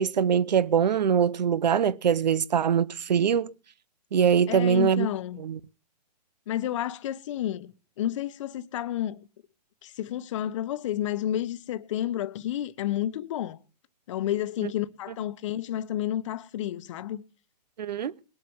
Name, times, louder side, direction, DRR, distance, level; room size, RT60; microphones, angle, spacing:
voice 1, 0.0-3.5 4.1-5.1 5.4-5.6 14.6-14.7 17.8-18.1, right 8 dB, 85° right, 0.9 m, -23 dB
voice 2, 4.5-5.4 6.5-7.7 8.0-9.2 9.8-13.6 14.1-17.2, left 12 dB, 45° left, 1.1 m, -30 dB
20.5 x 8.1 x 7.2 m
hypercardioid pair, 155°, 21 cm